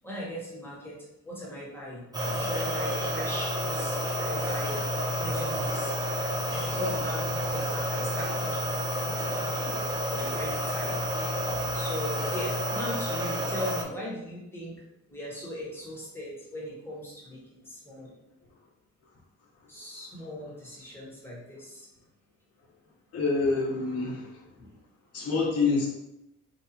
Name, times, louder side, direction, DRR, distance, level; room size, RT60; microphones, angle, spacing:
voice 1, 0.0-2.0 2.4-4.8 5.1-5.9 6.6-8.8 9.2-9.7 10.1-11.0 11.7-14.7 15.1-18.1 19.7-21.9 24.6-24.7, equal, 5° left, -5 dB, 1.4 m, -38 dB
sound 1, 2.1-13.8, equal, 15° right, 0.6 m, -30 dB
voice 2, 23.1-24.4 25.1-25.9, left 4 dB, 55° left, -3 dB, 1.2 m, -27 dB
3.3 x 2.8 x 2.9 m, 0.85 s
cardioid pair, 90°, 30 cm